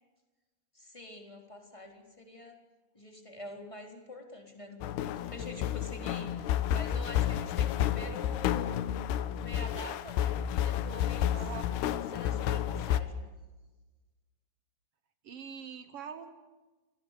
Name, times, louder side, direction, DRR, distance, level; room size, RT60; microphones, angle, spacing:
voice 1, 0.7-2.6 2.9-8.9 9.3-11.4 12.1-13.2, left 1 dB, 10° left, 2 dB, 3.5 m, -46 dB
sound 1, 4.8-13.0, left 10 dB, 85° left, 3.1 m, -31 dB
voice 2, 11.3-11.8 15.2-16.3, right 6 dB, 80° right, 9 dB, 1.3 m, -43 dB
29.0 x 21.0 x 8.4 m, 1.2 s
omnidirectional pair, 4.6 m